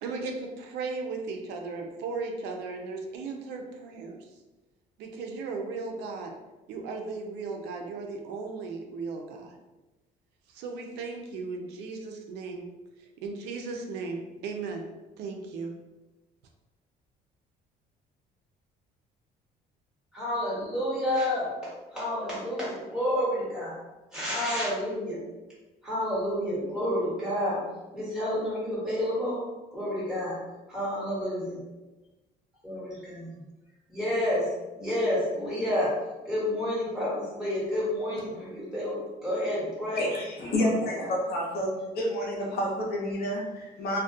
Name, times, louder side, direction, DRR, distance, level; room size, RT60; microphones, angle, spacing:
voice 1, 0.0-4.3 5.0-6.3 6.7-9.6 10.5-12.7 13.0-14.9 15.2-15.8, right 4 dB, 85° right, 3 dB, 0.4 m, -36 dB
voice 2, 20.1-23.8 24.1-25.2 25.8-27.6 27.9-29.4 29.7-30.4 30.7-31.6 32.6-33.3 33.9-34.5 34.8-35.9 36.2-40.1 40.4-41.2, left 1 dB, 5° right, -8 dB, 1.3 m, -30 dB
voice 3, 40.0-41.7 41.9-44.0, equal, 65° left, -2 dB, 0.7 m, -29 dB
2.3 x 2.1 x 2.6 m, 1.1 s
cardioid pair, 110°, 17 cm